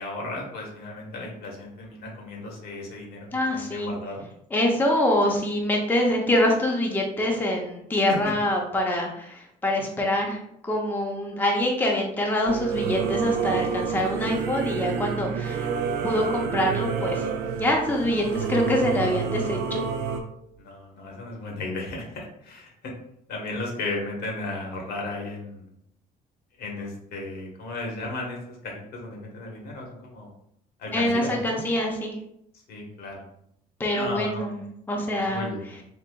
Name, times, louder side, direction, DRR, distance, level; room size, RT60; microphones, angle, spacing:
voice 1, 0.0-4.3 8.1-8.2 20.6-22.9 23.3-25.7 26.6-30.3 30.8-31.6 32.7-33.2 33.9-34.6 35.1-35.8, left 2 dB, 75° left, -1 dB, 1.1 m, -35 dB
voice 2, 3.3-3.9 4.5-15.7 16.0-17.3 17.6-19.8 30.9-32.2 33.8-34.6 34.9-35.5, left 1 dB, 10° left, 0 dB, 0.5 m, -25 dB
Singing / Musical instrument, 12.5-20.2, right 6 dB, 75° right, 0.5 m, -28 dB
3.9 x 2.6 x 2.2 m, 0.74 s
cardioid pair, 110°, 17 cm